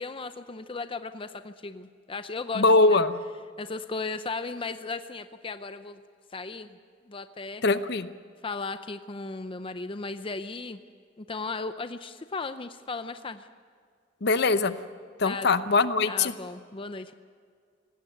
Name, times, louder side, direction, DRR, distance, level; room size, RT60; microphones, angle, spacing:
voice 1, 0.0-3.0 3.6-6.0 6.3-6.8 7.1-7.6 8.4-10.8 11.2-13.5 15.2-15.5 16.1-17.1, left 3 dB, 30° left, 10 dB, 0.6 m, -36 dB
voice 2, 2.6-3.2 7.6-8.1 14.2-14.7 15.2-16.3, left 3 dB, 60° left, 12 dB, 0.8 m, -22 dB
18.0 x 17.0 x 9.3 m, 2.1 s
head